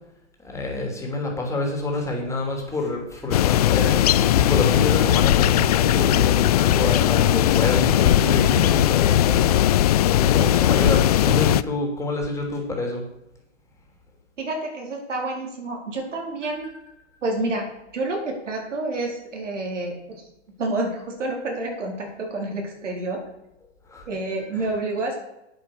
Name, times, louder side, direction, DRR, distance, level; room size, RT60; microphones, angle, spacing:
voice 1, 0.4-13.0 16.4-16.5 23.9-24.1 24.6-24.7, left 2 dB, 10° left, 1 dB, 3.0 m, -27 dB
sound 1, 3.3-11.6, left 12 dB, 35° left, 0.4 m, -18 dB
voice 2, 14.4-16.7 17.2-17.7 17.9-19.9 20.6-23.2 24.1-25.2, right 2 dB, 80° right, 0 dB, 4.6 m, -28 dB
9.4 x 9.3 x 6.6 m, 0.89 s
hypercardioid pair, 135°, 36 cm